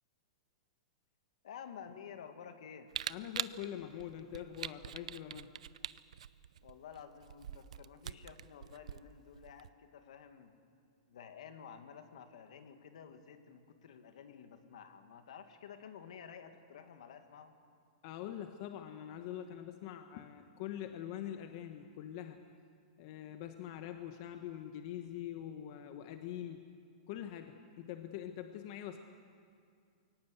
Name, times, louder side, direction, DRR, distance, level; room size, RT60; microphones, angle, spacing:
voice 1, 1.4-2.9 6.6-10.5 11.1-17.6, left 7 dB, 75° left, 7 dB, 2.1 m, -52 dB
Camera, 2.9-9.7, right 10 dB, 85° right, 0.6 m, -44 dB
voice 2, 3.1-5.5 18.0-22.4 23.0-26.7 27.1-29.0, left 11 dB, 45° left, 7 dB, 1.1 m, -44 dB
23.0 x 18.0 x 8.2 m, 2.2 s
supercardioid pair, 155°, 4 cm